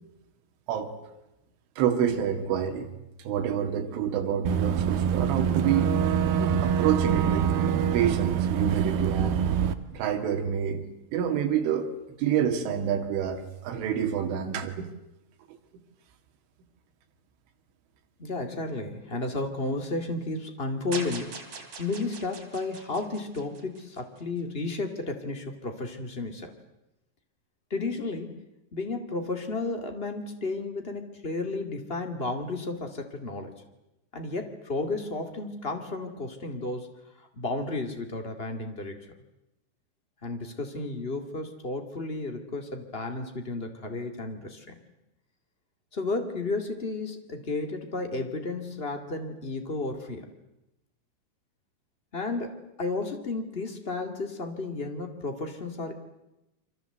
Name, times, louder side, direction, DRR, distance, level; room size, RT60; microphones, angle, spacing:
voice 1, 1.8-2.9 3.2-6.0 6.4-7.5 7.9-9.4 9.9-10.9 11.1-11.9 12.2-14.9, right 8 dB, 80° right, 4 dB, 4.7 m, -27 dB
Boat Water vehicle / Engine, 4.4-9.7, right 8 dB, 65° right, 2.7 m, -25 dB
voice 2, 18.2-21.4 21.8-26.6 27.7-28.4 28.7-33.5 34.1-36.9 37.2-38.9 40.2-44.8 45.9-50.3 52.1-56.0, left 3 dB, 65° left, 5 dB, 0.5 m, -33 dB
sound 1, 20.9-24.2, right 4 dB, 35° right, 4.3 m, -41 dB
29.0 x 25.5 x 8.0 m, 0.93 s
omnidirectional pair, 5.5 m